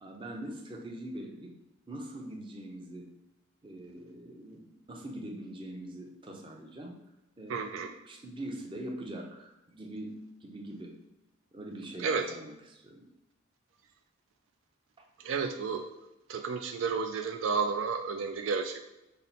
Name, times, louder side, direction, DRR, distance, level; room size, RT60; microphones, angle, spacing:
voice 1, 0.0-1.5 1.9-3.1 3.6-7.0 7.4-10.9 11.5-13.1 15.0-15.1, right 1 dB, 25° right, 1 dB, 0.6 m, -43 dB
voice 2, 7.5-7.9 12.0-12.2 15.2-15.9 16.3-18.8, right 5 dB, 65° right, 5 dB, 0.3 m, -31 dB
5.6 x 2.0 x 4.1 m, 0.92 s
head